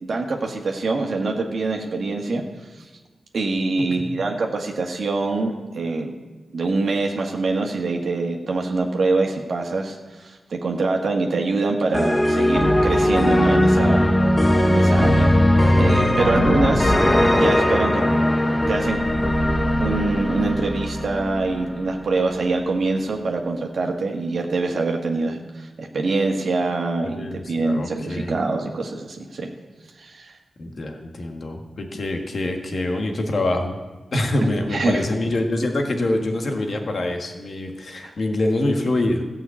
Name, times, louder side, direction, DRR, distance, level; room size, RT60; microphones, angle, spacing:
voice 1, 0.0-2.4 2.8-2.9 3.3-6.2 6.5-14.0 14.7-15.4 15.8-16.9 17.3-18.0 18.7-19.0 19.8-29.5 30.0-30.3 34.4-35.0 38.0-38.1, right 3 dB, 65° right, 1 dB, 1.5 m, -24 dB
voice 2, 3.8-4.2 16.2-16.7 27.1-28.4 30.6-33.7 34.1-39.2, left 1 dB, 55° left, 3 dB, 1.7 m, -25 dB
sound 1, 11.9-22.0, left 1 dB, 15° left, 1.0 m, -19 dB
14.5 x 5.7 x 8.4 m, 1.2 s
wide cardioid pair, 90°, 0 cm